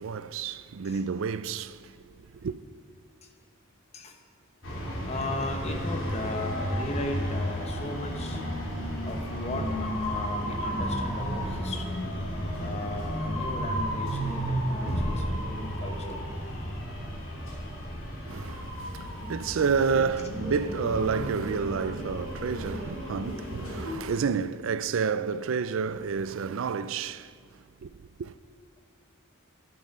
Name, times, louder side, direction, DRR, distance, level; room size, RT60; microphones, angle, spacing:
voice 1, 0.0-1.9 2.2-2.6 18.2-27.3 27.8-27.9 28.2-28.3, right 5 dB, 65° right, 0.4 m, -30 dB
sound 1, 4.6-23.9, equal, 65° left, 2.9 m, -33 dB
voice 2, 5.1-8.4 9.0-12.0 12.6-16.3, left 1 dB, 30° left, 1.1 m, -37 dB
11.5 x 10.5 x 5.5 m
head